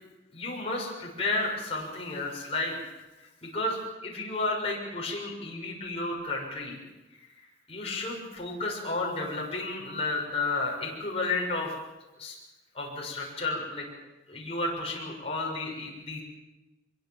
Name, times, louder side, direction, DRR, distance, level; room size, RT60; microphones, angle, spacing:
voice 1, 0.3-2.8 3.4-6.8 7.7-11.7 12.2-12.3 12.7-13.8 14.3-16.2, left 2 dB, 35° left, -2 dB, 6.6 m, -32 dB
24.5 x 23.0 x 7.4 m, 1.0 s
head